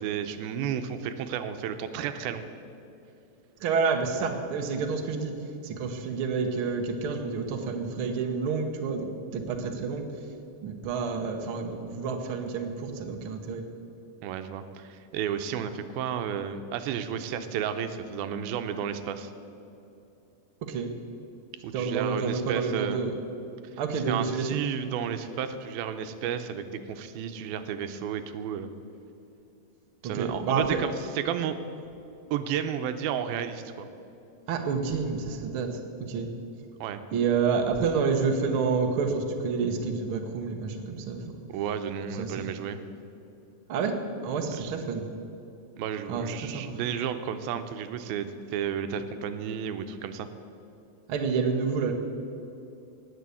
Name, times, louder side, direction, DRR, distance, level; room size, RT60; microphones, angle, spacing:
voice 1, 0.0-2.5 14.2-19.3 21.6-23.0 24.1-28.7 30.0-31.6 32.3-33.9 36.8-37.0 41.5-42.8 44.6-44.7 45.8-50.3, right 8 dB, 85° right, 9 dB, 2.6 m, -32 dB
voice 2, 3.6-10.1 10.6-13.6 20.6-20.9 21.7-23.1 23.8-24.6 30.0-30.8 34.5-36.3 37.1-41.3 42.1-42.4 43.7-44.0 44.2-45.1 46.1-46.8 51.1-51.9, right 5 dB, 65° right, 3 dB, 1.3 m, -29 dB
18.5 x 6.9 x 8.4 m, 2.8 s
omnidirectional pair, 4.3 m